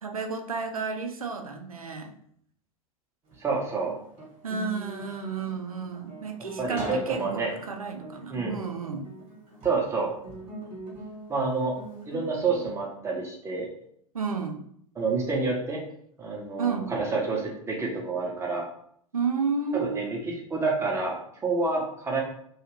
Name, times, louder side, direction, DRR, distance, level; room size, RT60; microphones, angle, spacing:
voice 1, 0.0-2.1 4.4-9.1 14.1-14.6 16.6-16.9 19.1-20.1, right 5 dB, 80° right, 5 dB, 0.4 m, -32 dB
Guitar, 3.3-12.7, right 1 dB, 30° right, 1.1 m, -42 dB
voice 2, 3.4-4.0 6.6-7.5 8.3-8.6 9.6-10.1 11.3-11.8 12.1-13.7 15.0-15.8 16.2-18.7 19.7-22.2, right 3 dB, 15° right, -1 dB, 0.7 m, -28 dB
2.5 x 2.3 x 3.0 m, 0.66 s
figure-of-eight pair, 90°, 18 cm